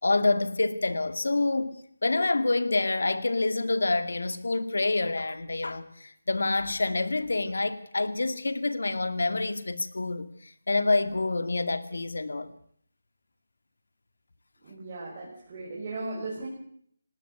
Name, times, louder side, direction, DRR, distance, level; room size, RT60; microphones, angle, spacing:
voice 1, 0.0-12.5, left 2 dB, 80° left, 12 dB, 2.3 m, -27 dB
voice 2, 14.6-16.5, right 2 dB, 25° right, -6 dB, 7.4 m, -37 dB
19.5 x 18.0 x 8.1 m, 0.64 s
figure-of-eight pair, 170°, 0 cm